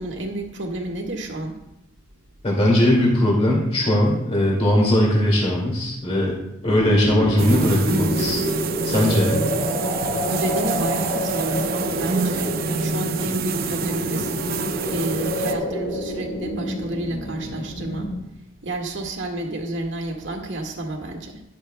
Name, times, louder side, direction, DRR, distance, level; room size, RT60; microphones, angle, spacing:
voice 1, 0.0-1.6 10.2-18.1 18.6-21.4, right 1 dB, 70° right, 2 dB, 1.7 m, -30 dB
voice 2, 2.4-8.4 8.8-9.5, left 1 dB, 30° left, -3 dB, 2.1 m, -19 dB
sound 1, 6.7-18.2, equal, 90° left, 3.2 m, -28 dB
sound 2, 7.4-15.5, right 4 dB, 50° right, 0.5 m, -27 dB
13.0 x 10.5 x 2.2 m, 0.83 s
head